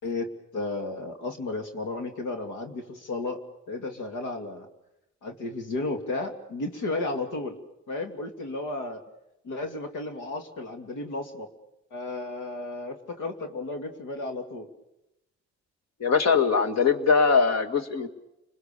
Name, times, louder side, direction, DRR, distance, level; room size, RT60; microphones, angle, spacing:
voice 1, 0.0-3.4 3.7-4.7 5.2-7.6 7.9-9.0 9.4-11.5 11.9-14.7, left 2 dB, 80° left, 5 dB, 2.7 m, -33 dB
voice 2, 16.0-18.1, left 5 dB, 60° left, 6 dB, 2.2 m, -21 dB
29.5 x 21.0 x 6.9 m, 0.88 s
cardioid pair, 90°, 30 cm